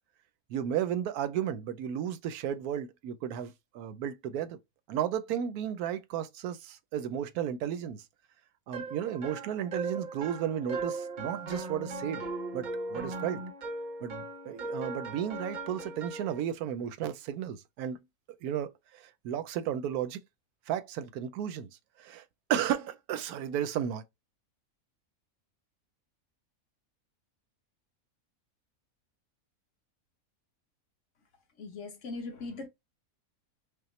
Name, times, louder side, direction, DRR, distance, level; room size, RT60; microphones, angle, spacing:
voice 1, 0.5-4.6 4.9-8.0 8.7-12.2 12.5-13.4 14.0-18.0 18.4-20.2 20.7-21.7 22.0-22.2 22.5-24.0, right 9 dB, 90° right, 1.1 m, -33 dB
sound 1, 8.7-16.4, right 3 dB, 45° right, 0.6 m, -38 dB
voice 2, 31.6-32.7, left 3 dB, 60° left, 1.3 m, -39 dB
5.6 x 2.0 x 3.1 m
omnidirectional pair, 1.5 m